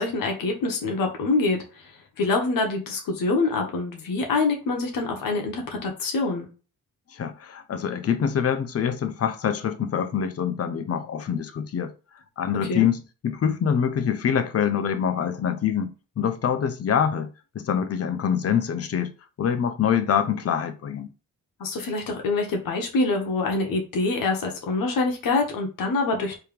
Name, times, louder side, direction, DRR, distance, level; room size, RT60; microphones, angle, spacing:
voice 1, 0.0-1.9 2.2-6.5 12.6-12.9 21.6-26.4, left 3 dB, 75° left, 1.1 m, -25 dB
voice 2, 7.1-11.9 12.4-17.3 17.5-19.1 19.4-21.1, left 8 dB, 45° left, 0.6 m, -25 dB
3.3 x 2.9 x 3.4 m
cardioid pair, 85°, 34 cm